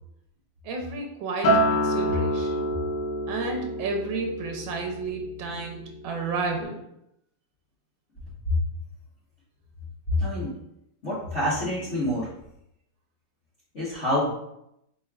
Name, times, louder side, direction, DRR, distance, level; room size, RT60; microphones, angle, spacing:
voice 1, 0.6-2.7 3.3-6.8, right 3 dB, 85° right, 2 dB, 1.5 m, -32 dB
Acoustic guitar, 1.4-5.9 6.2-6.6, equal, 75° left, 1.6 m, -27 dB
voice 2, 10.2-10.6 11.0-12.3 13.7-14.3, left 1 dB, 40° left, -10 dB, 1.5 m, -27 dB
4.4 x 3.7 x 2.4 m, 0.79 s
omnidirectional pair, 2.0 m